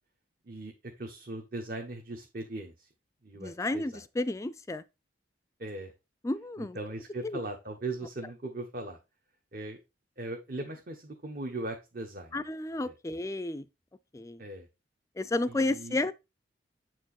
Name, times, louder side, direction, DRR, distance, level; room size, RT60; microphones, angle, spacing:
voice 1, 0.4-2.9 3.2-3.9 5.6-5.9 6.6-9.0 9.5-9.8 10.2-12.4 12.8-12.9 14.4-14.7 15.5-16.0, right 2 dB, 50° right, 1.0 m, -39 dB
voice 2, 3.4-4.8 6.2-6.8 7.2-7.4 12.3-13.7 14.1-14.4 15.2-16.1, left 2 dB, 15° left, 0.3 m, -32 dB
7.6 x 4.5 x 4.2 m
head